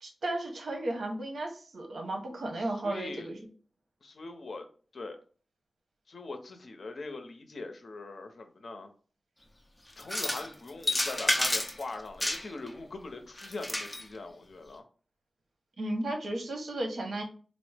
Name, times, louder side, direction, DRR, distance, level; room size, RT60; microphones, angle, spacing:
voice 1, 0.0-3.4 15.8-17.2, right 1 dB, 85° right, 2 dB, 0.8 m, -34 dB
voice 2, 2.6-3.3 4.0-4.7 4.9-5.2 6.1-8.9 10.0-14.8, left 3 dB, 70° left, 6 dB, 0.6 m, -42 dB
sound 1, 10.0-10.5 10.8-11.8 12.2-12.7 13.4-14.0, left 1 dB, 15° left, 0.7 m, -30 dB
4.0 x 2.0 x 3.3 m, 0.40 s
wide cardioid pair, 75°, 0 cm